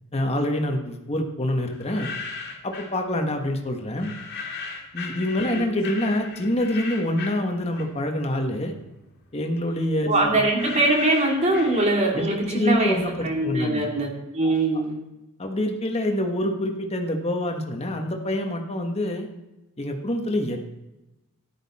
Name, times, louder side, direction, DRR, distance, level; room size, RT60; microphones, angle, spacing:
voice 1, 0.1-2.1 2.6-4.1 4.9-8.7 9.3-10.5 12.1-13.8 14.4-14.8 15.4-19.3 19.8-20.6, left 1 dB, 30° left, 3 dB, 1.4 m, -26 dB
sound 1, 1.7-3.0 4.0-8.2 8.6-12.3, left 5 dB, 45° left, 2.3 m, -37 dB
voice 2, 10.1-15.0, right 2 dB, 30° right, 0 dB, 2.5 m, -22 dB
14.0 x 10.5 x 4.3 m, 1.0 s
head